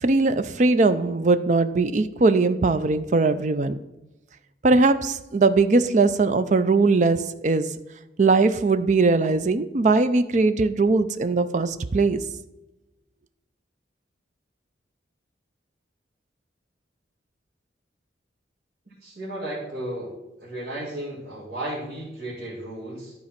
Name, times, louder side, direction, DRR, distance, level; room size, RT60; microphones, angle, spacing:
voice 1, 0.0-3.8 4.6-7.7 8.2-12.2, right 3 dB, 40° right, 12 dB, 0.4 m, -20 dB
voice 2, 19.0-20.1 20.4-23.1, right 1 dB, 60° right, -8 dB, 2.4 m, -34 dB
11.5 x 4.2 x 5.8 m, 1.0 s
head